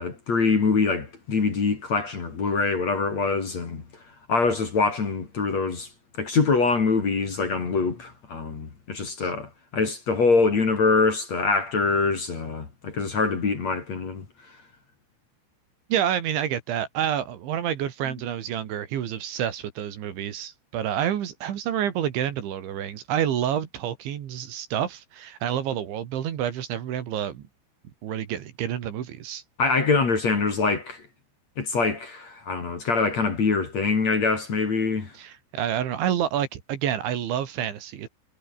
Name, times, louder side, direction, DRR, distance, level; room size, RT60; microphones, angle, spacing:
voice 1, 0.0-3.8 4.3-5.9 6.2-14.2 29.6-31.0 31.6-35.1, left 4 dB, 35° left, 4.1 m, -24 dB
voice 2, 15.9-27.5 28.0-29.4 35.2-38.1, right 10 dB, 70° right, 4.5 m, -28 dB
omnidirectional pair, 5.8 m